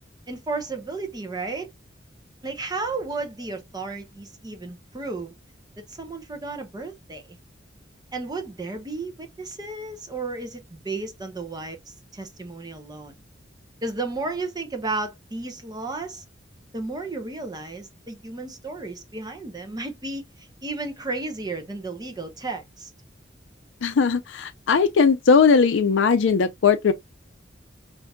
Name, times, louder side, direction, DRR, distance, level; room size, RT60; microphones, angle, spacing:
voice 1, 0.3-1.7 2.4-5.3 5.9-7.4 8.1-11.8 12.1-13.1 13.8-16.2 16.7-22.9, right 3 dB, 20° right, 0.8 m, -33 dB
voice 2, 23.8-26.9, left 5 dB, 75° left, 0.4 m, -19 dB
5.6 x 2.6 x 2.2 m
head